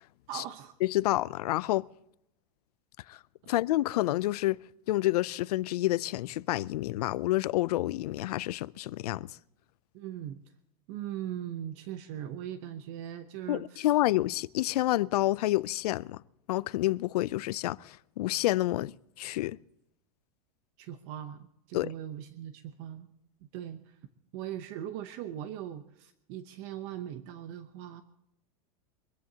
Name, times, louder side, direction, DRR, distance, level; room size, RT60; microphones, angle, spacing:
voice 1, 0.3-0.7 3.4-3.6 9.9-10.4 10.9-13.9 20.8-23.1 23.5-23.9 24.3-28.0, right 11 dB, 50° right, 0.8 m, -40 dB
voice 2, 0.8-1.9 3.1-3.2 3.5-9.3 13.5-16.2 16.5-19.6 21.7-21.9, left 16 dB, 80° left, 0.4 m, -29 dB
24.0 x 15.5 x 2.8 m
supercardioid pair, 150°, 20 cm